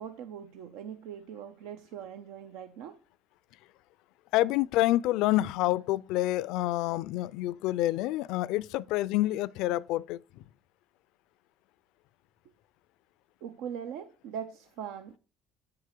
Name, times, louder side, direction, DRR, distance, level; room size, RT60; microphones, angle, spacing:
voice 1, 0.0-3.0 13.4-15.2, right 8 dB, 85° right, 0.6 m, -41 dB
voice 2, 4.3-10.2, left 16 dB, 80° left, 0.4 m, -27 dB
8.4 x 4.7 x 6.6 m
cardioid pair, 115°, 0 cm